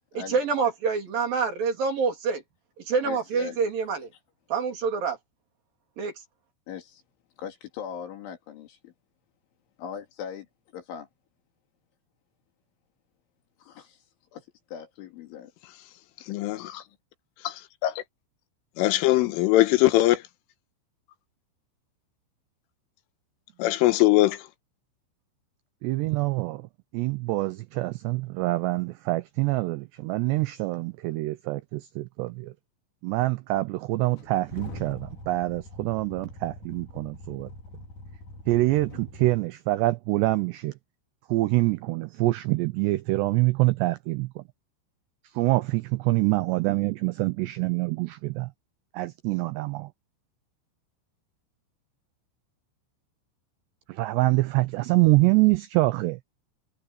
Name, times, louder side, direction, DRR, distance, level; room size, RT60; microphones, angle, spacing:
voice 1, 0.1-2.4 2.9-4.1 4.5-5.2 6.0-6.1, right 5 dB, 50° right, 4.5 m, -26 dB
voice 2, 3.0-3.6 6.7-7.0 7.4-8.9 9.8-10.5 10.7-11.1 13.6-14.0 14.3-14.5 14.7-15.5, left 8 dB, 75° left, 5.2 m, -39 dB
voice 3, 18.8-20.2 23.6-24.4, left 16 dB, 90° left, 3.7 m, -20 dB
voice 4, 25.8-26.7 26.9-32.5 33.0-37.5 38.5-40.7 41.3-44.4 45.4-48.5 48.9-49.9 53.9-56.2, right 20 dB, 85° right, 2.5 m, -25 dB
sound 1, 34.2-39.4, left 1 dB, 40° left, 5.7 m, -43 dB
omnidirectional pair, 5.6 m